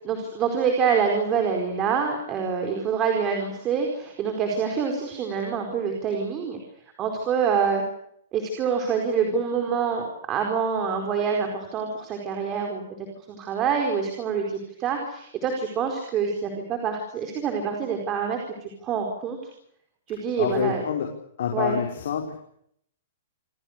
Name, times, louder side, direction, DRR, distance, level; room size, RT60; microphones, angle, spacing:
voice 1, 0.0-6.6 7.0-7.8 8.3-12.8 13.3-19.4 20.1-20.8 21.5-21.8, right 6 dB, 20° right, 3 dB, 4.7 m, -26 dB
voice 2, 20.4-21.1 21.4-22.4, left 8 dB, 55° left, 3 dB, 5.5 m, -26 dB
29.0 x 24.5 x 6.8 m, 0.70 s
hypercardioid pair, 175°, 0 cm